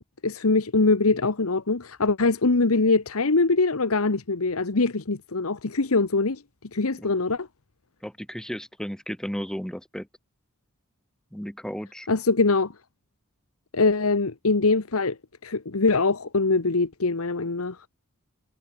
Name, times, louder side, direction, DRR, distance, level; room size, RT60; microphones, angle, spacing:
voice 1, 0.2-6.4 6.7-7.5 12.1-12.7 13.7-15.2 15.4-17.8, left 3 dB, 85° left, 1.2 m, -23 dB
voice 2, 8.0-10.1 11.3-12.1, equal, 5° left, 1.1 m, -34 dB
head